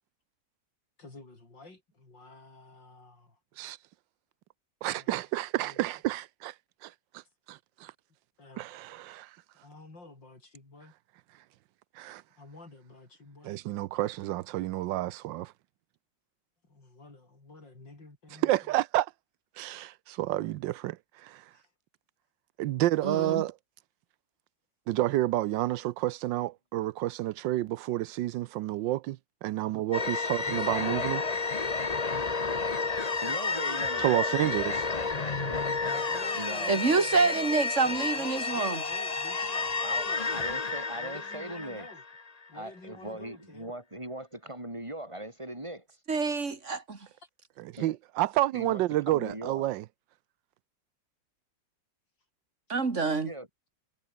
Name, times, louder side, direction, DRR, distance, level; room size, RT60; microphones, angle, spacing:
voice 1, 1.0-3.4 4.9-5.1 5.6-5.8 8.4-8.7 9.6-10.9 12.4-13.6 16.6-18.5 21.5-21.7 30.4-31.2 33.6-33.8 35.3-37.5 37.8-40.6 41.0-42.0 42.5-43.7, left 2 dB, 75° left, 6.7 m, -50 dB
voice 2, 4.8-6.5 7.5-7.9 8.6-9.4 11.9-12.2 13.4-15.5 18.4-19.1 19.6-21.5 22.6-23.6 24.9-31.2 34.0-34.9 47.6-49.8, right 15 dB, 90° right, 1.3 m, -30 dB
voice 3, 23.0-23.4 36.7-38.8 46.1-47.0 52.7-53.3, right 4 dB, 40° right, 2.8 m, -27 dB
sound 1, 29.9-42.4, left 4 dB, 25° left, 1.1 m, -31 dB
voice 4, 33.2-34.4 35.0-35.6 36.3-36.8 39.8-41.9 42.5-45.8 47.8-48.0 48.5-49.6 53.2-53.5, right 1 dB, 15° right, 6.5 m, -40 dB
omnidirectional pair, 2.0 m